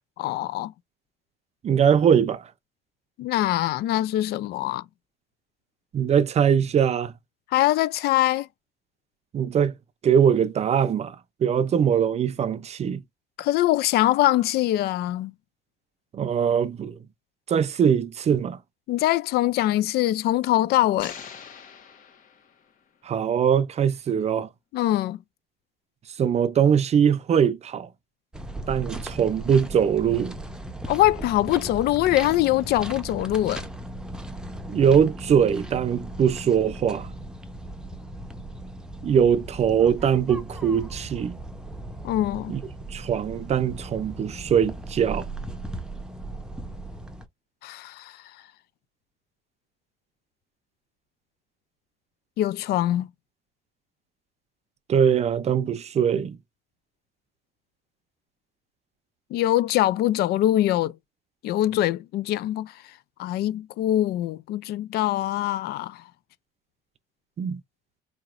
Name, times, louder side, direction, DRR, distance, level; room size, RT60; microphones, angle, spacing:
voice 1, 0.2-0.7 3.2-4.8 7.5-8.5 13.4-15.3 18.9-21.1 24.7-25.2 30.9-33.6 42.0-42.6 47.6-48.2 52.4-53.1 59.3-61.0 61.4-62.8 63.2-66.0, left 14 dB, 70° left, 0.4 m, -23 dB
voice 2, 1.6-2.4 5.9-7.1 9.3-9.7 10.0-11.2 11.4-13.0 16.1-16.9 17.5-18.6 23.0-24.5 26.2-27.9 28.7-30.4 34.7-37.1 39.0-41.4 42.5-42.6 42.9-45.3 54.9-56.4 67.4-67.6, right 8 dB, 40° right, 0.5 m, -22 dB
sound 1, 21.0-22.9, left 6 dB, 55° left, 1.2 m, -43 dB
sound 2, 28.3-47.3, right 1 dB, 5° right, 0.7 m, -37 dB
4.2 x 2.9 x 2.5 m
cardioid pair, 110°, 17 cm